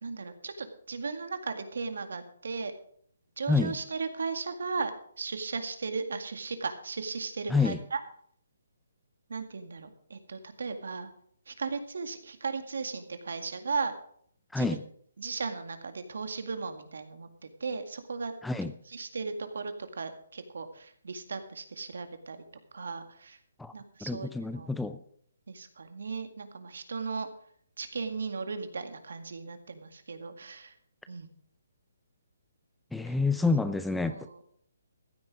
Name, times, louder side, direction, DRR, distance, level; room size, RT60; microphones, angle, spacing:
voice 1, 0.0-2.7 3.4-4.9 5.2-8.0 9.3-11.1 11.5-13.9 14.6-14.8 15.2-18.3 18.9-22.4 22.7-23.4 23.7-24.7 25.5-27.3 27.8-30.7 31.1-31.3 34.1-34.5, right 4 dB, 75° right, 8 dB, 2.0 m, -36 dB
voice 2, 14.5-14.8 18.4-18.7 23.6-23.7 24.0-25.0 32.9-34.2, left 3 dB, 5° left, 11 dB, 0.4 m, -28 dB
15.0 x 9.4 x 5.0 m, 0.62 s
hypercardioid pair, 165°, 0 cm